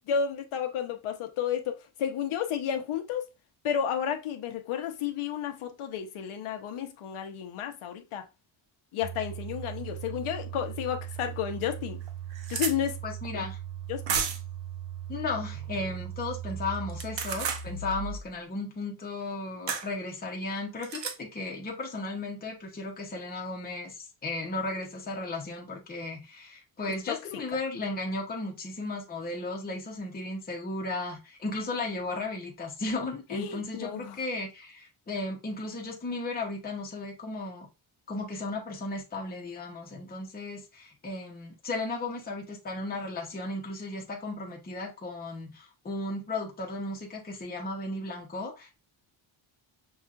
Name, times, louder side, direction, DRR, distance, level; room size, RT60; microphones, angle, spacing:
voice 1, 0.1-1.7 2.0-3.2 3.6-8.2 8.9-12.0 12.5-13.0 13.3-13.4 13.9-14.2 27.1-27.2 33.3-34.2, left 8 dB, 85° left, 0.8 m, -32 dB
sound 1, 9.0-18.3, right 9 dB, 75° right, 1.2 m, -39 dB
sound 2, 11.1-11.2 11.7-11.8 12.0-12.8 14.1-14.5 16.9-17.7 19.7-19.9 20.8-21.2, right 7 dB, 60° right, 0.7 m, -31 dB
voice 2, 13.0-13.6 15.1-37.7 38.1-48.8, left 2 dB, 20° left, 0.7 m, -35 dB
5.6 x 2.4 x 2.4 m
wide cardioid pair, 160°, 48 cm